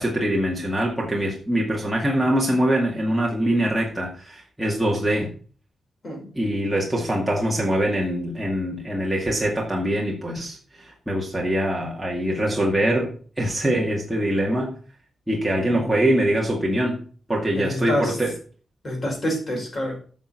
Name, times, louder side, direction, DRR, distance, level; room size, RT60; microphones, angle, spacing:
voice 1, 0.0-5.3 6.4-14.7 15.3-17.0 17.3-18.3, right 1 dB, 5° right, -3 dB, 2.2 m, -23 dB
voice 2, 15.7-16.1 17.6-18.2 18.8-20.0, equal, 35° left, -1 dB, 5.4 m, -27 dB
9.9 x 6.3 x 5.8 m, 0.42 s
wide cardioid pair, 135°, 0 cm